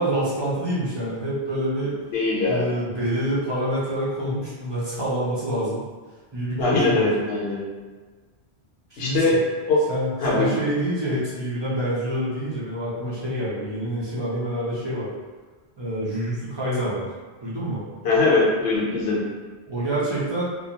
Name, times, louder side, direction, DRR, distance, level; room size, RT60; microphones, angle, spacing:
voice 1, 0.0-2.0 2.5-5.8 6.3-7.1 8.9-9.3 9.9-15.1 15.8-17.1 17.4-17.8 19.7-20.5, right 1 dB, 40° right, -8 dB, 0.4 m, -26 dB
voice 2, 2.1-2.6 6.6-7.6 9.0-9.4 9.7-9.8 10.2-10.5 18.0-19.2, left 3 dB, 65° left, -5 dB, 0.9 m, -21 dB
2.4 x 2.2 x 2.8 m, 1.4 s
omnidirectional pair, 1.2 m